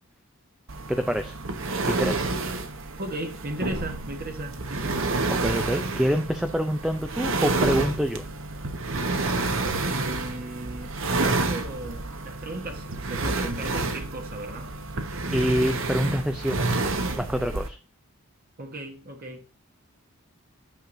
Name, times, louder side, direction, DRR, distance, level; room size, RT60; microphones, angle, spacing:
sound 1, 0.7-17.7, right 3 dB, 60° right, 1.1 m, -29 dB
voice 1, 0.9-1.4 1.9-2.3 5.3-8.3 15.3-16.6 17.2-17.8, equal, 5° right, 0.4 m, -26 dB
voice 2, 3.0-5.1 9.9-14.7 18.6-19.5, right 1 dB, 40° right, 1.1 m, -36 dB
9.1 x 6.5 x 2.6 m
head